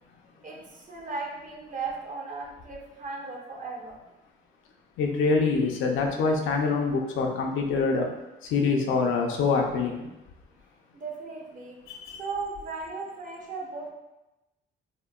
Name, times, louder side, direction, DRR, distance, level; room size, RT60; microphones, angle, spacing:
voice 1, 0.4-4.0 10.9-11.8 12.2-13.9, right 4 dB, 40° right, -1 dB, 0.7 m, -36 dB
voice 2, 5.0-8.1 8.5-10.1 11.9-12.2, left 4 dB, 85° left, 1 dB, 0.5 m, -25 dB
3.7 x 2.1 x 2.3 m, 0.99 s
cardioid pair, 90°, 20 cm